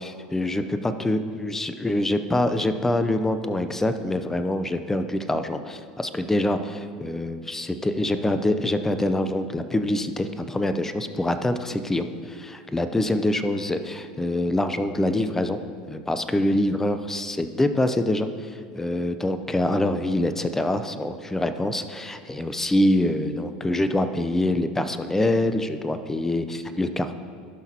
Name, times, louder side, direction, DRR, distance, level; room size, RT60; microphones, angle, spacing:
voice 1, 0.0-15.6 15.9-27.2, left 1 dB, 10° left, 10 dB, 0.6 m, -25 dB
16.5 x 5.8 x 2.9 m, 2.1 s
hypercardioid pair, 85°, 4 cm